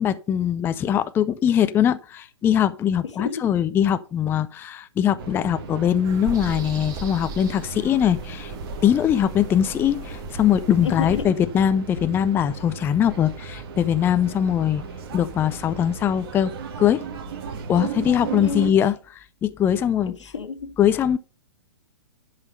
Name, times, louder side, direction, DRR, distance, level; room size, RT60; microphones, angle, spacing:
voice 1, 0.0-8.5 8.8-14.8 15.1-16.5 16.8-17.0 17.7-20.2 20.8-21.2, left 9 dB, 15° left, 0.5 m, -21 dB
voice 2, 3.2-3.5 10.8-11.3 18.4-18.7 20.1-20.8, left 5 dB, 80° left, 1.7 m, -30 dB
sound 1, 5.2-18.7, right 5 dB, 55° right, 2.0 m, -36 dB
sound 2, 6.0-11.2, right 3 dB, 25° right, 1.6 m, -37 dB
11.0 x 5.8 x 5.2 m
hypercardioid pair, 130°, 15 cm